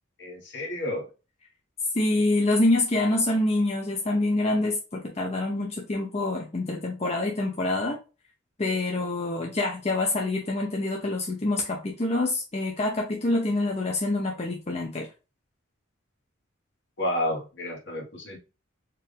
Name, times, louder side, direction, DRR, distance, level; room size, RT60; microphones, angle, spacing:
voice 1, 0.2-1.1 9.0-9.1 17.0-18.4, left 1 dB, 60° left, 1.5 m, -31 dB
voice 2, 1.9-8.0 8.6-15.1, left 2 dB, 30° left, 0.6 m, -26 dB
4.5 x 2.6 x 3.3 m
head